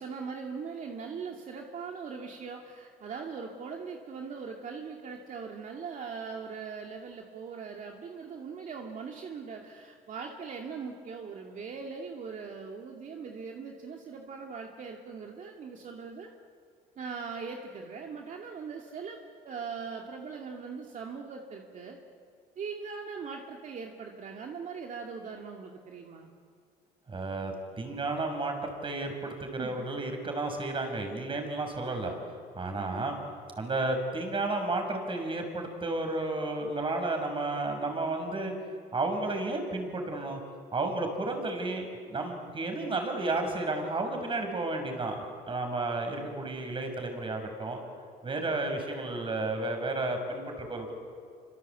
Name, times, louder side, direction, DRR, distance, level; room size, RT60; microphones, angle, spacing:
voice 1, 0.0-16.3 17.0-19.2 19.4-22.0 22.6-26.3 29.2-29.3 29.6-29.9 32.8-33.1, right 5 dB, 50° right, 1 dB, 2.4 m, -40 dB
voice 2, 27.1-32.2 32.6-33.2 33.6-38.5 38.9-40.4 40.7-47.8 48.2-50.9, right 2 dB, 30° right, 4 dB, 6.2 m, -32 dB
27.5 x 25.5 x 8.4 m, 2.2 s
cardioid pair, 110°, 17 cm